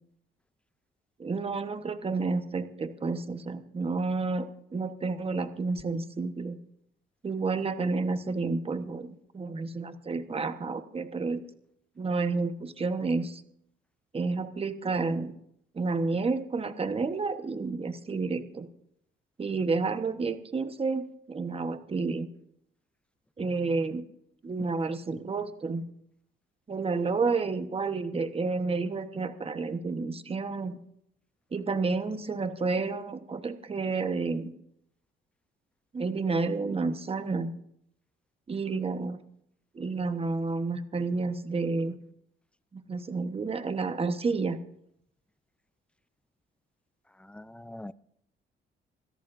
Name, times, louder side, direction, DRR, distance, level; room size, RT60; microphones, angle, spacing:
voice 1, 1.2-6.6 7.2-11.4 12.0-13.4 14.1-15.3 15.7-18.7 19.4-22.3 23.4-24.1 24.4-25.8 26.7-30.8 31.5-34.5 35.9-37.5 38.5-39.2 39.7-42.0 42.7-44.6, right 4 dB, 30° right, 9 dB, 1.2 m, -30 dB
voice 2, 47.3-47.9, left 1 dB, 5° left, 17 dB, 0.4 m, -43 dB
26.5 x 13.5 x 2.6 m, 0.73 s
cardioid pair, 90°, 20 cm